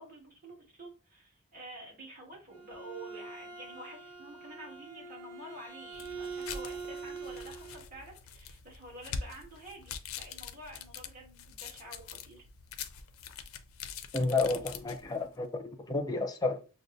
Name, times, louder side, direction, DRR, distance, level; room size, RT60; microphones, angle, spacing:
voice 1, 0.0-12.4, right 1 dB, 40° right, 1.9 m, -49 dB
Bowed string instrument, 2.3-7.8, right 4 dB, 90° right, 1.0 m, -44 dB
sound 1, 5.9-15.2, left 6 dB, 70° left, 0.4 m, -44 dB
voice 2, 14.1-15.5 15.9-16.6, left 3 dB, 20° left, 0.5 m, -30 dB
6.2 x 2.2 x 2.6 m
head